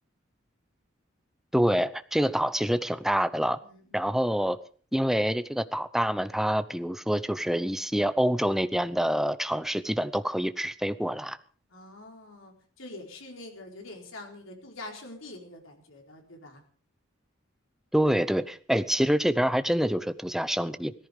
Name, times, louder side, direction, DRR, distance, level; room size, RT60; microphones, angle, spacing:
voice 1, 1.5-3.6 3.9-4.6 4.9-11.4 17.9-20.9, equal, ahead, 13 dB, 0.7 m, -26 dB
voice 2, 3.6-4.3 11.7-16.6, left 2 dB, 75° left, 2 dB, 4.3 m, -45 dB
17.0 x 14.5 x 5.1 m, 0.42 s
head